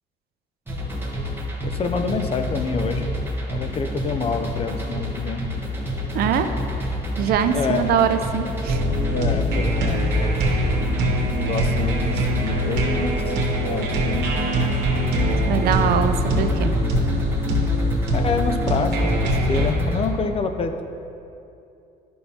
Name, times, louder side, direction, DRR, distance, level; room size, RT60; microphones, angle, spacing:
sound 1, 0.7-20.1, left 1 dB, 15° right, 1.1 m, -29 dB
voice 1, 1.6-3.1 3.5-5.4 7.5-7.9 9.1-10.1 11.3-13.4 13.6-14.3 18.1-20.8, left 4 dB, 35° left, 7 dB, 0.5 m, -27 dB
voice 2, 6.1-6.5 7.2-8.8 15.5-16.7, right 8 dB, 65° right, 8 dB, 0.5 m, -22 dB
sound 2, 8.7-19.7, equal, 85° right, 1.2 m, -23 dB
10.5 x 5.5 x 2.8 m, 2.7 s
cardioid pair, 110°, 17 cm